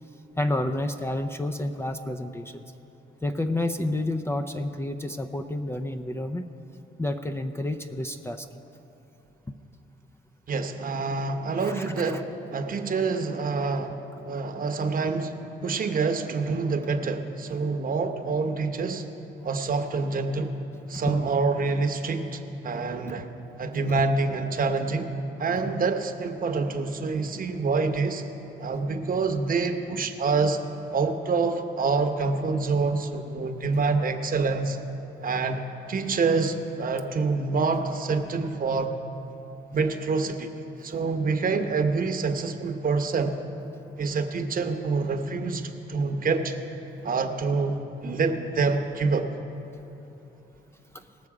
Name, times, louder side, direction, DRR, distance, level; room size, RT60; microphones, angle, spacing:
voice 1, 0.4-2.7 3.2-6.4 7.0-8.5 11.6-12.2 21.1-21.3 50.9-51.0, left 1 dB, 15° left, 6 dB, 0.4 m, -30 dB
voice 2, 10.5-15.3 15.6-19.0 19.4-20.5 20.9-23.3 23.6-25.1 25.4-28.2 28.6-30.6 30.9-34.8 35.2-35.6 35.9-38.9 39.7-40.5 40.8-43.4 44.0-46.5 47.0-49.3, right 4 dB, 45° right, 6 dB, 0.9 m, -26 dB
19.0 x 6.6 x 4.8 m, 3.0 s
cardioid pair, 90°, 20 cm